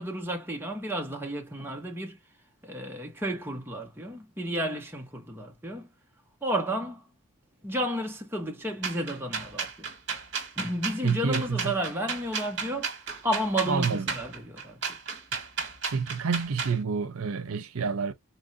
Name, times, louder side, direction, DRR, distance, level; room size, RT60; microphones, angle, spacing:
voice 1, 0.0-2.2 2.6-5.9 6.4-7.0 7.6-9.9 10.6-14.8, equal, 10° right, 0.9 m, -32 dB
sound 1, 8.8-16.8, right 5 dB, 55° right, 1.4 m, -33 dB
voice 2, 11.0-11.7 13.6-14.1 15.9-18.1, right 5 dB, 85° right, 0.7 m, -28 dB
4.2 x 2.6 x 2.5 m
head